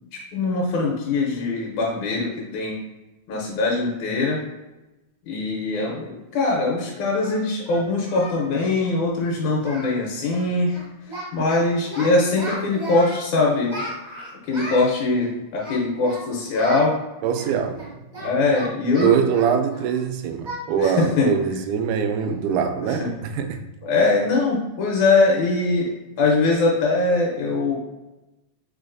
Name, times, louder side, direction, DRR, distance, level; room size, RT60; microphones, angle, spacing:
voice 1, 0.3-2.8 3.3-4.4 5.3-10.8 11.3-13.7 14.4-16.9 18.2-19.1 20.8-21.3 23.0-23.1 23.8-25.9 26.2-27.8, left 3 dB, 75° left, -3 dB, 2.2 m, -22 dB
Singing, 7.2-8.4 8.7-8.9 9.2-9.3 9.6-10.0 10.2-10.5 10.7-11.6 11.9-13.2 13.7-14.9 15.6-16.2 16.5-16.9 17.3-20.0 20.4-20.6 21.0-21.2 21.6-21.7 22.2-22.4, equal, 70° right, 0.4 m, -35 dB
voice 2, 17.2-17.8 18.2-18.3 19.0-23.6, right 7 dB, 85° right, 7 dB, 2.0 m, -23 dB
5.0 x 3.9 x 2.5 m, 1.0 s
omnidirectional pair, 3.5 m